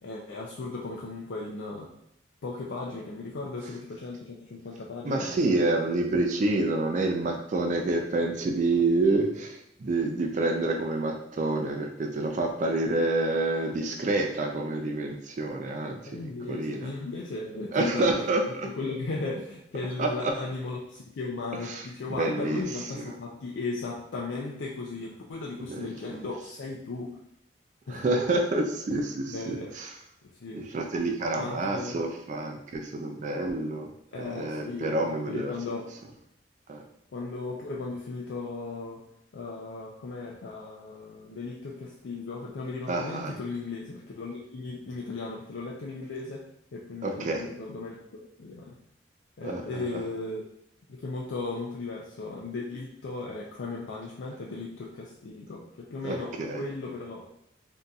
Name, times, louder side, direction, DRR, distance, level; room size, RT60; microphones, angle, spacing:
voice 1, 0.0-1.9 2.4-5.6 16.1-27.2 27.9-28.0 29.3-29.7 30.2-30.7 31.4-32.0 34.1-35.9 37.1-39.0 39.3-46.4 46.7-48.8 49.4-50.4 50.9-57.3, left 3 dB, 90° left, -3 dB, 0.4 m, -36 dB
voice 2, 5.0-16.2 16.5-16.9 17.7-18.4 20.0-20.3 21.7-21.9 22.2-22.6 25.7-25.9 27.9-29.9 30.5-33.9 34.1-35.5 36.7-36.8 42.9-43.3 47.0-47.4 49.4-50.0 56.0-56.6, right 2 dB, 40° right, 3 dB, 0.3 m, -28 dB
3.9 x 2.6 x 2.3 m, 0.76 s
head